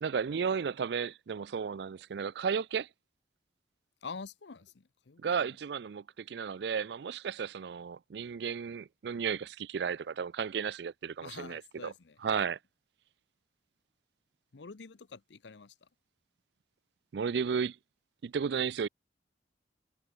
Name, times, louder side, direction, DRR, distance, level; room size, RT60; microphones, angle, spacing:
voice 1, 0.0-2.9 5.2-11.9 12.2-12.6 17.1-17.8 18.2-18.9, right 6 dB, 70° right, 0.4 m, -33 dB
voice 2, 4.0-5.6 11.2-12.2 14.5-15.9, left 4 dB, 80° left, 0.8 m, -47 dB
head